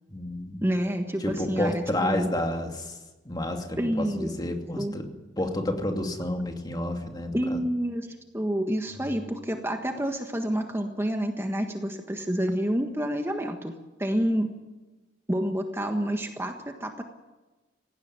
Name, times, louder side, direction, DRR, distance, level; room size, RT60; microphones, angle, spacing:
voice 1, 0.1-0.6 1.2-3.0 3.2-7.6 9.0-9.1, left 1 dB, 25° left, 4 dB, 2.5 m, -30 dB
voice 2, 0.6-2.3 3.8-4.3 4.8-5.0 7.3-8.1 8.3-14.5 15.3-17.0, equal, 15° right, 4 dB, 1.5 m, -28 dB
18.5 x 16.0 x 9.6 m, 1.2 s
head